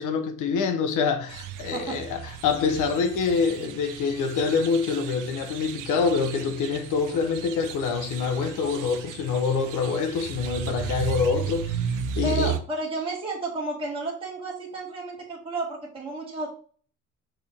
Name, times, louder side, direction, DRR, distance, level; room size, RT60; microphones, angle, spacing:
voice 1, 0.0-11.8 12.2-12.5, left 5 dB, 80° left, 1.2 m, -26 dB
sound 1, 1.3-12.6, right 8 dB, 85° right, 0.7 m, -35 dB
voice 2, 12.2-16.5, right 2 dB, 15° right, 1.8 m, -32 dB
5.7 x 4.5 x 3.6 m
cardioid pair, 170°, 31 cm